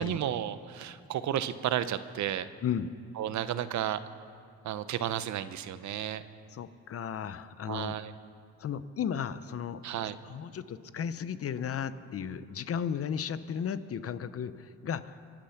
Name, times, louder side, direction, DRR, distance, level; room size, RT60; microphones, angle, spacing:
voice 1, 0.0-2.5 3.2-4.0 4.6-6.2 7.7-8.1 9.8-10.2, right 11 dB, 70° right, 13 dB, 0.8 m, -32 dB
voice 2, 6.5-7.9 8.6-9.8 10.3-15.2, left 8 dB, 50° left, 14 dB, 0.8 m, -34 dB
24.5 x 8.9 x 5.9 m, 2.4 s
cardioid pair, 90°, 30 cm